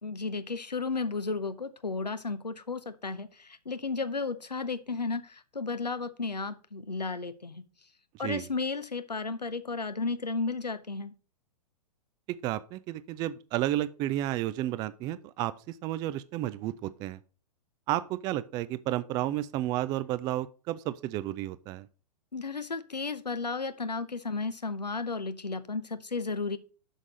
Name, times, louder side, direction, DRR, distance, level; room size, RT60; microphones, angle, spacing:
voice 1, 0.0-7.6 8.2-11.1 22.3-26.6, left 4 dB, 90° left, 0.7 m, -33 dB
voice 2, 12.4-17.2 17.9-21.9, right 14 dB, 20° right, 0.3 m, -32 dB
6.3 x 6.0 x 5.2 m
figure-of-eight pair, 110°, 21 cm